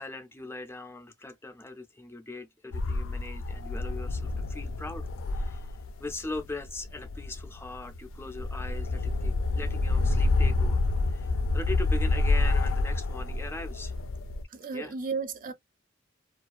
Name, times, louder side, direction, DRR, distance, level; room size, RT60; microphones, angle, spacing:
voice 1, 0.0-5.7 6.0-10.8 11.1-13.9 14.7-14.9, left 3 dB, 10° left, 0.4 m, -40 dB
sound 1, 2.7-14.4, left 2 dB, 90° left, 0.3 m, -28 dB
voice 2, 14.5-15.5, right 5 dB, 45° right, 0.5 m, -34 dB
2.3 x 2.3 x 2.4 m
head